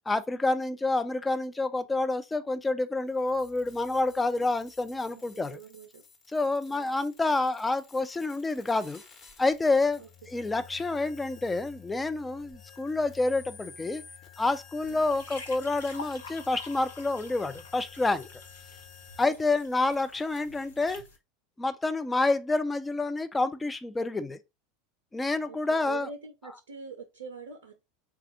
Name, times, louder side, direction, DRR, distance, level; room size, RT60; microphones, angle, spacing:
voice 1, 0.1-5.6 6.3-9.0 9.4-10.0 10.3-14.0 14.4-18.3 19.2-21.0 21.6-24.4 25.1-26.1, left 2 dB, 10° left, 0.5 m, -28 dB
sound 1, 3.0-19.3, left 7 dB, 35° left, 1.2 m, -52 dB
voice 2, 5.1-6.0 6.7-6.9 10.0-10.3 14.9-15.1 19.2-19.6 25.5-27.8, right 5 dB, 65° right, 0.6 m, -45 dB
sound 2, 14.8-21.2, left 3 dB, 70° left, 0.9 m, -47 dB
4.0 x 2.4 x 4.3 m
figure-of-eight pair, 80°, 0 cm